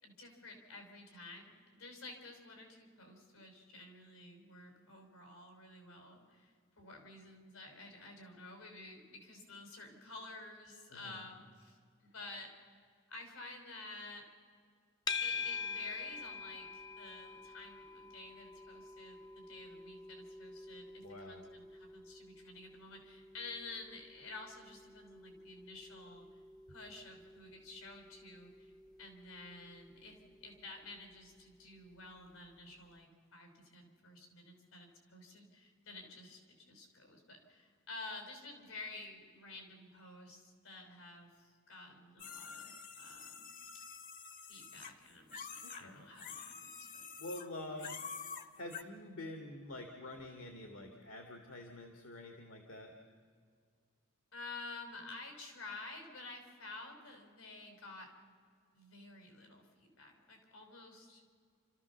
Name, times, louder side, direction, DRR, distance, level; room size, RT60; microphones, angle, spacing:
voice 1, 0.0-11.8 12.0-12.5 13.1-14.3 15.2-26.3 26.7-43.6 44.5-47.1 47.8-47.9 54.3-58.1 58.7-61.2, left 3 dB, 90° left, 3 dB, 5.2 m, -51 dB
voice 2, 10.9-11.2 21.0-21.4 45.6-46.0 47.2-48.0 48.5-52.9, left 1 dB, 75° left, 4 dB, 2.0 m, -47 dB
sound 1, 15.1-32.3, left 5 dB, 20° left, 0.7 m, -47 dB
sound 2, 42.2-45.8 46.1-47.5 47.8-48.8, left 6 dB, 40° left, 1.1 m, -48 dB
29.0 x 14.0 x 7.1 m, 2.1 s
head